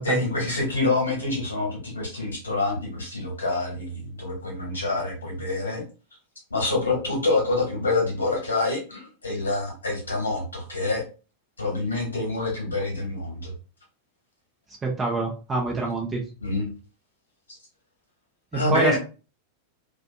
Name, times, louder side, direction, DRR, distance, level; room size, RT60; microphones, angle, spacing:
voice 1, 0.0-5.8 6.5-11.0 11.6-13.5 16.4-16.7 18.5-19.0, left 2 dB, 80° left, -1 dB, 1.3 m, -26 dB
voice 2, 14.8-16.2 18.5-19.0, right 3 dB, 20° right, -1 dB, 0.6 m, -26 dB
2.6 x 2.6 x 2.2 m, 0.34 s
figure-of-eight pair, 90°, 0 cm